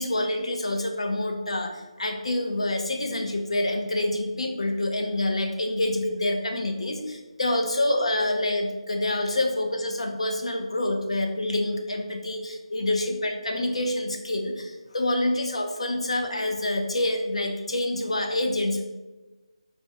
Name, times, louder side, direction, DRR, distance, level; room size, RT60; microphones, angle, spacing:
voice 1, 0.0-18.8, left 1 dB, 65° left, 3 dB, 0.6 m, -27 dB
4.2 x 2.2 x 3.3 m, 1.2 s
figure-of-eight pair, 180°, 3 cm